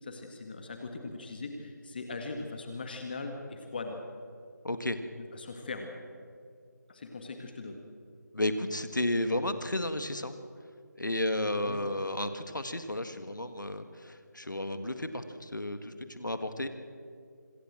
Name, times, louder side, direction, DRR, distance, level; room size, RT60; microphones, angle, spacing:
voice 1, 0.0-4.0 5.3-5.9 6.9-7.8 11.6-11.8, left 3 dB, 30° left, 4 dB, 1.7 m, -40 dB
voice 2, 4.6-5.0 8.3-10.3 11.0-16.7, left 1 dB, 85° left, 9 dB, 1.9 m, -32 dB
26.0 x 14.5 x 7.6 m, 2.3 s
figure-of-eight pair, 165°, 10 cm